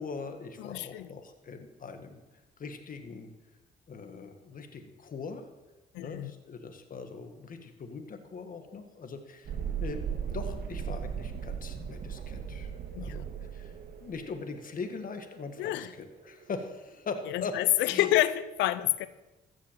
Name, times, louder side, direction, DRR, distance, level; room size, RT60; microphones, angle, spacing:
voice 1, 0.0-2.2 2.6-3.3 3.9-5.5 6.0-9.5 9.8-12.7 13.0-13.7 14.0-17.6 17.9-18.1, left 4 dB, 50° left, 7 dB, 1.7 m, -41 dB
voice 2, 0.6-1.1 5.9-6.3 12.9-13.2 15.6-15.9 17.3-19.1, left 14 dB, 90° left, 15 dB, 0.6 m, -28 dB
Thunderstorm, 9.5-16.9, right 7 dB, 60° right, 2.0 m, -38 dB
14.5 x 6.2 x 7.4 m, 1.1 s
supercardioid pair, 65°, 18 cm